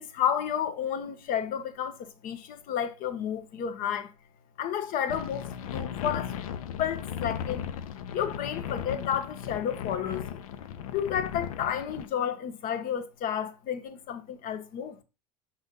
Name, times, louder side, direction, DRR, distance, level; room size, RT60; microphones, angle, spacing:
voice 1, 0.0-4.1 4.6-6.3 6.8-7.7 8.1-10.4 10.9-15.0, left 9 dB, 55° left, 1.1 m, -31 dB
sound 1, 5.1-12.1, left 9 dB, 80° left, 0.7 m, -36 dB
6.0 x 4.1 x 5.3 m
hypercardioid pair, 85°, 18 cm